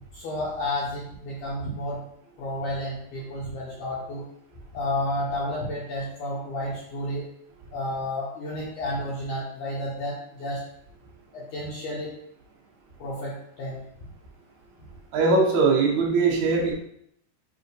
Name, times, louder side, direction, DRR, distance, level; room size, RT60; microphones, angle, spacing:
voice 1, 0.1-2.0 2.4-4.2 4.7-7.3 7.7-10.6 11.3-12.1 13.0-13.8, left 1 dB, 80° left, -5 dB, 1.8 m, -31 dB
voice 2, 15.1-16.7, right 4 dB, 85° right, -3 dB, 1.5 m, -21 dB
7.0 x 2.6 x 5.3 m, 0.73 s
omnidirectional pair, 5.0 m